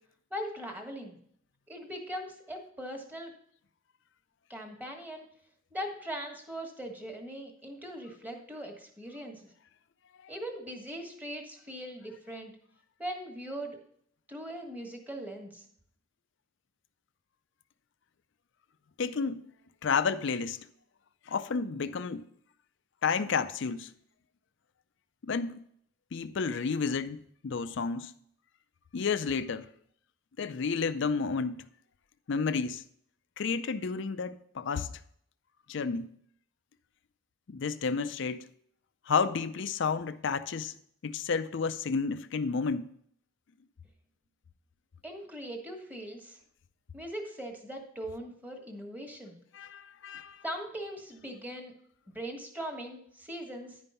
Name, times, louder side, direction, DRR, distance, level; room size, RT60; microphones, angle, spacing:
voice 1, 0.3-1.2 1.7-3.3 4.5-5.3 5.7-9.4 10.3-12.5 13.0-13.8 14.3-15.6 45.0-46.4 46.9-49.4 50.4-51.7 52.1-53.8, equal, 10° right, 1.3 m, -40 dB
voice 2, 19.0-19.4 19.8-20.6 21.3-22.2 23.0-23.9 25.2-25.6 26.1-27.2 27.4-28.1 28.9-29.7 30.4-31.6 32.3-32.8 33.4-34.9 35.7-36.1 37.5-38.5 39.1-40.7 41.0-42.9 49.5-50.4, left 5 dB, 60° left, 0.4 m, -31 dB
10.5 x 5.3 x 5.6 m
head